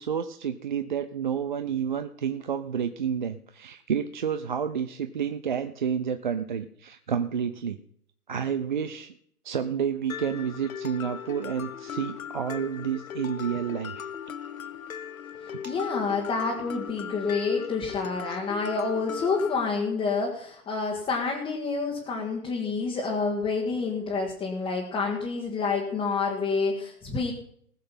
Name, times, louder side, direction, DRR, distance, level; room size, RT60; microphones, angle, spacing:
voice 1, 0.0-7.8 8.3-9.1 9.4-14.1 15.5-15.6 18.3-18.4, right 7 dB, 35° right, 10 dB, 0.4 m, -30 dB
Mallet percussion, 10.1-19.7, left 8 dB, 60° left, 0.9 m, -38 dB
voice 2, 15.6-27.3, left 4 dB, 10° left, -2 dB, 1.4 m, -28 dB
19.0 x 6.5 x 5.6 m, 0.66 s
figure-of-eight pair, 120°, 46 cm